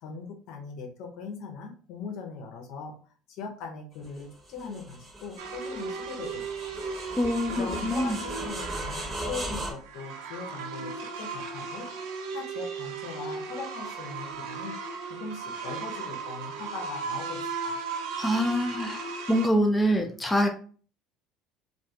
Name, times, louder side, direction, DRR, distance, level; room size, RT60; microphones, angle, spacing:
voice 1, 0.0-3.0 3.3-6.7 7.5-14.7 15.1-17.8, left 5 dB, 60° left, 2 dB, 0.6 m, -40 dB
sound 1, 4.0-9.7, right 1 dB, 30° right, 0.9 m, -38 dB
sound 2, 5.4-19.5, right 5 dB, 70° right, 0.4 m, -36 dB
voice 2, 7.2-8.2 18.2-20.5, equal, 10° left, 3 dB, 0.5 m, -25 dB
2.6 x 2.3 x 2.7 m, 0.41 s
figure-of-eight pair, 65°, 0 cm